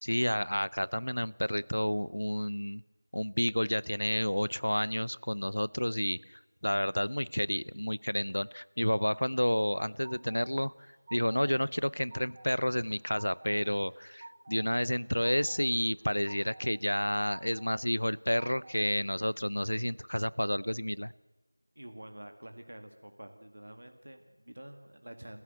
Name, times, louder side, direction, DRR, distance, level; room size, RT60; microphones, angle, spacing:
voice 1, 0.0-2.8 3.1-10.7 11.1-21.1, equal, 70° left, 21 dB, 0.7 m, -30 dB
sound 1, 9.4-10.4 10.8-11.5 11.8-12.5 12.8-13.6 13.9-14.6 14.9-15.6 16.0-16.7 17.0-17.7 18.1-18.8, right 2 dB, 15° right, 1.9 m, -51 dB
voice 2, 21.8-25.4, right 1 dB, 50° right, 6 dB, 2.0 m, -48 dB
28.0 x 15.5 x 8.1 m, 1.2 s
figure-of-eight pair, 175°, 0 cm